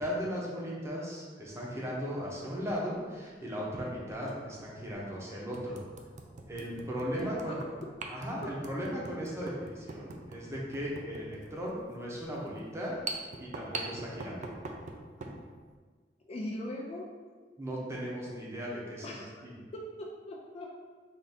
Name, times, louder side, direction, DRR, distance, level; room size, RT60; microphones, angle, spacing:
voice 1, 0.0-5.8 6.5-7.6 8.1-13.0 13.4-14.5 17.6-19.6, equal, 15° right, -5 dB, 0.8 m, -37 dB
sound 1, 2.5-2.8 4.2-4.3 4.9-5.0 5.5-15.4, right 3 dB, 45° right, 0.4 m, -43 dB
voice 2, 7.2-7.6 8.4-8.5 16.2-17.1 19.0-19.3 19.7-20.7, left 1 dB, 35° left, -1 dB, 0.4 m, -40 dB
3.5 x 2.6 x 4.1 m, 1.5 s
head